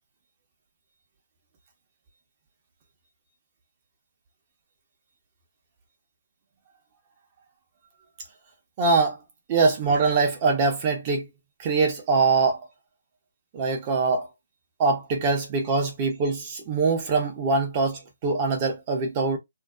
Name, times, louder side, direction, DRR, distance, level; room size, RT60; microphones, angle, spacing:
voice 1, 8.8-9.2 9.5-11.3 11.6-12.6 13.5-14.3 14.8-19.4, right 4 dB, 30° right, 0.9 m, -23 dB
2.7 x 2.3 x 2.3 m
hypercardioid pair, 150°, 0 cm